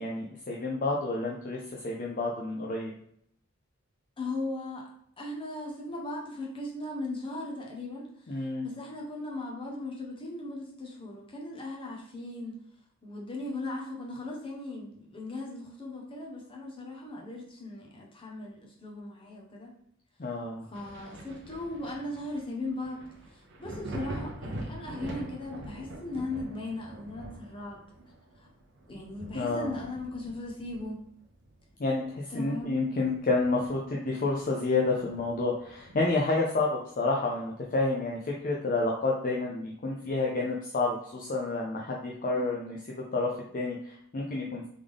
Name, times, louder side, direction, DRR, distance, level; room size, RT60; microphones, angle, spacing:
voice 1, 0.0-2.9 8.3-8.7 20.2-20.7 29.3-29.7 31.8-44.7, left 3 dB, 40° left, -2 dB, 0.5 m, -29 dB
voice 2, 4.2-4.8 5.2-12.6 13.0-19.7 20.7-27.8 28.4-28.5 28.9-31.0 32.3-32.8 42.3-42.4, left 2 dB, 25° left, -2 dB, 1.0 m, -38 dB
Thunder, 20.7-32.1 32.5-34.0 34.3-34.4 35.0-36.3 37.7-37.8, right 1 dB, 55° right, 0.7 m, -44 dB
3.6 x 3.6 x 3.4 m, 0.70 s
head